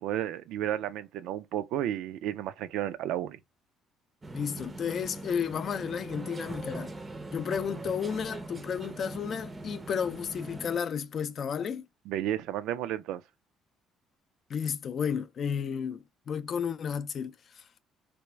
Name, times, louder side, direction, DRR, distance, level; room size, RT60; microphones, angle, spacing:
voice 1, 0.0-3.4 12.1-13.2, right 11 dB, 80° right, 0.4 m, -32 dB
sound 1, 4.2-10.8, right 2 dB, 20° right, 0.5 m, -41 dB
voice 2, 4.3-6.9 7.3-11.9 14.5-17.6, left 7 dB, 45° left, 0.4 m, -32 dB
3.4 x 2.5 x 3.0 m
cardioid pair, 115°, 0 cm